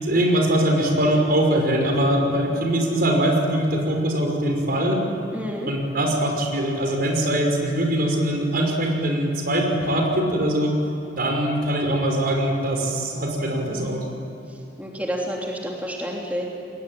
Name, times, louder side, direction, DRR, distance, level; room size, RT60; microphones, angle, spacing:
voice 1, 0.0-5.0 5.7-10.8 11.2-14.0, right 1 dB, 55° right, 2 dB, 5.7 m, -22 dB
voice 2, 5.3-5.7 14.8-16.5, equal, 10° right, -2 dB, 2.9 m, -29 dB
30.0 x 21.5 x 9.3 m, 2.8 s
head